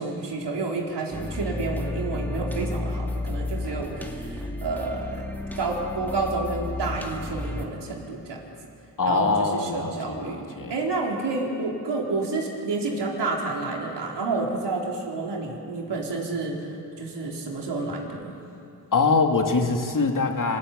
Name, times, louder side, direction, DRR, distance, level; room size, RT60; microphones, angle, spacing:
voice 1, 0.0-8.4 9.0-18.3, right 3 dB, 70° right, -1 dB, 4.1 m, -30 dB
sound 1, 1.1-7.7, left 2 dB, 5° left, 2.4 m, -32 dB
voice 2, 9.0-10.7 18.9-20.6, left 4 dB, 45° left, 3 dB, 2.7 m, -23 dB
26.0 x 14.0 x 9.0 m, 2.7 s
cardioid pair, 50°, 43 cm